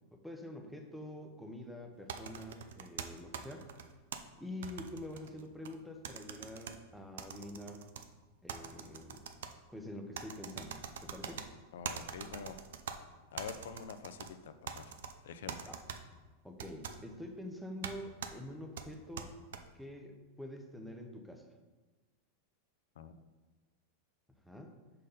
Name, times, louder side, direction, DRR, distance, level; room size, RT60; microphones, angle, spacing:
voice 1, 0.1-3.7 4.4-7.8 8.4-9.3 9.7-11.5 15.7-15.8 16.4-19.4 19.7-21.5 24.4-24.7, left 1 dB, ahead, 4 dB, 0.6 m, -46 dB
sound 1, 2.1-4.2 4.6-5.7 6.0-6.7 7.2-8.0 8.5-9.5 10.1-11.5 11.8-13.0 13.4-14.3 14.7-15.1 15.5-16.0 16.6-17.0 17.8-17.9 18.2-18.3 18.8-19.6, right 7 dB, 85° right, 0.5 m, -43 dB
voice 2, 11.7-12.6 13.3-14.9 15.2-15.7 23.0-23.1, left 6 dB, 85° left, 10 dB, 0.5 m, -46 dB
5.3 x 4.3 x 5.1 m, 1.3 s
supercardioid pair, 150°, 0 cm